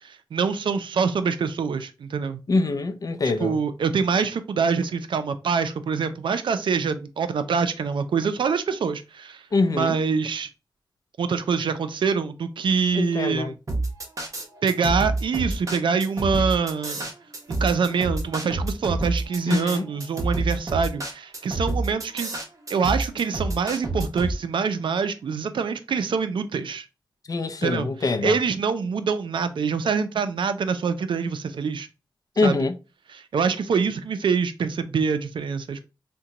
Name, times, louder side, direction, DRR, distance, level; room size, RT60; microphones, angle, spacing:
voice 1, 0.0-2.4 3.2-9.4 9.7-10.5 11.2-13.6 14.6-17.1 17.5-22.3 22.7-26.9 27.6-31.9 32.4-32.6 33.1-35.8, right 5 dB, 90° right, 0.4 m, -25 dB
voice 2, 2.5-3.6 9.5-9.9 13.0-13.5 19.5-19.9 27.3-28.4 32.4-32.7, left 3 dB, 50° left, 0.4 m, -24 dB
sound 1, 13.7-24.3, right 2 dB, 40° right, 0.8 m, -28 dB
3.7 x 2.2 x 2.8 m
wide cardioid pair, 100°, 8 cm